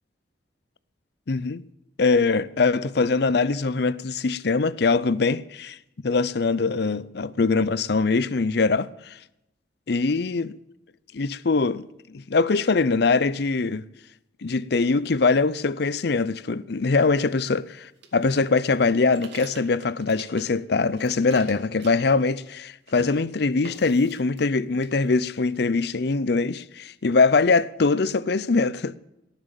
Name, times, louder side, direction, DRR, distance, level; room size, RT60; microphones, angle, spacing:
voice 1, 1.3-1.6 2.0-5.8 6.0-9.2 9.9-10.5 11.1-13.8 14.4-28.9, left 4 dB, 55° left, 0.5 m, -22 dB
sound 1, 18.0-20.6 20.9-22.6 22.9-23.2 23.6-24.5 24.8-25.6, right 4 dB, 60° right, 2.2 m, -46 dB
17.5 x 7.4 x 9.1 m
head